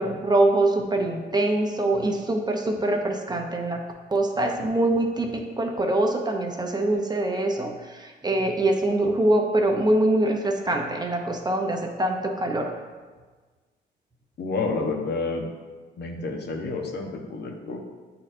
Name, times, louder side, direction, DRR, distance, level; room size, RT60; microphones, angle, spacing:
voice 1, 0.0-3.8 4.1-12.7, right 1 dB, 20° right, 2 dB, 0.7 m, -24 dB
voice 2, 14.4-15.4 16.0-17.8, left 3 dB, 55° left, 2 dB, 0.9 m, -29 dB
8.6 x 4.2 x 2.6 m, 1.4 s
cardioid pair, 90°, 20 cm